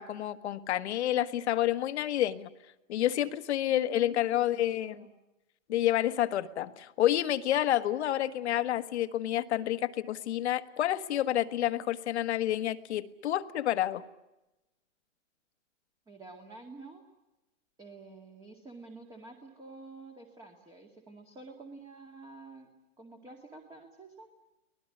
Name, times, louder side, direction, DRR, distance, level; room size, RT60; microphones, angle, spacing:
voice 1, 0.0-2.5 2.9-5.1 5.7-14.0, left 12 dB, 55° left, 10 dB, 1.5 m, -29 dB
voice 2, 3.7-5.1 16.1-17.0 17.8-22.7 23.0-24.3, right 3 dB, 10° right, 3 dB, 2.1 m, -49 dB
24.5 x 19.0 x 10.0 m, 0.98 s
hypercardioid pair, 140°, 39 cm